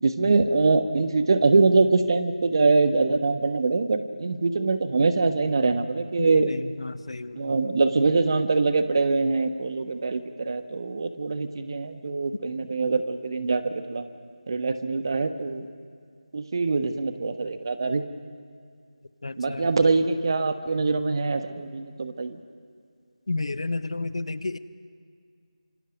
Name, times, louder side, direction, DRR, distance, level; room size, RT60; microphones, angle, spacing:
voice 1, 0.0-6.5 7.4-14.0 14.5-15.7 16.3-18.0 19.4-22.4, right 3 dB, 40° right, 10 dB, 1.2 m, -23 dB
voice 2, 6.2-7.5 19.2-19.9 23.3-24.6, left 3 dB, 60° left, 14 dB, 0.9 m, -32 dB
26.5 x 25.5 x 5.3 m, 2.2 s
figure-of-eight pair, 165°, 4 cm